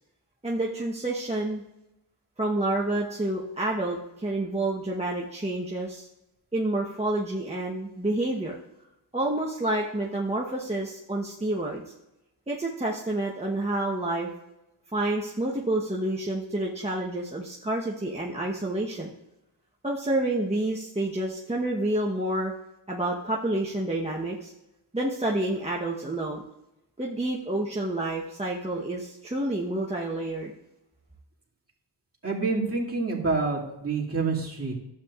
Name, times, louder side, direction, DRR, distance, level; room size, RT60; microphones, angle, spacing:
voice 1, 0.4-1.6 2.4-6.1 6.5-8.5 9.1-11.8 12.5-14.3 14.9-19.1 19.8-22.5 22.9-24.5 24.9-26.4 27.0-30.5, right 1 dB, 15° right, -3 dB, 1.0 m, -29 dB
voice 2, 32.2-34.7, right 4 dB, 30° right, -4 dB, 2.3 m, -27 dB
12.0 x 8.1 x 2.4 m, 0.91 s
cardioid pair, 55°, 47 cm